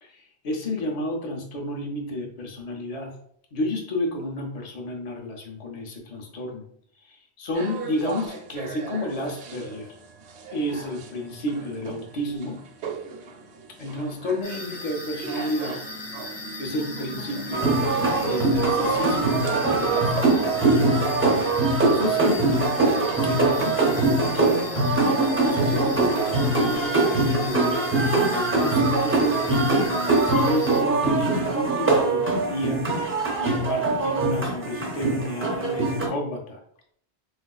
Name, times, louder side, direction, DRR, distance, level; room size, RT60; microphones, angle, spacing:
voice 1, 0.0-3.1 3.5-6.7 7.0-10.0 10.5-12.6 13.8-15.8 16.6-17.8 18.2-21.0 21.8-22.7 23.2-27.9 28.3-36.6, left 1 dB, 40° left, 1 dB, 0.7 m, -31 dB
sound 1, 7.5-27.3, right 3 dB, 90° right, 0.9 m, -39 dB
sound 2, 14.4-30.8, left 2 dB, 85° left, 1.2 m, -38 dB
sound 3, 17.5-36.1, right 3 dB, 20° right, 0.3 m, -22 dB
4.5 x 2.5 x 2.3 m, 0.65 s
omnidirectional pair, 1.1 m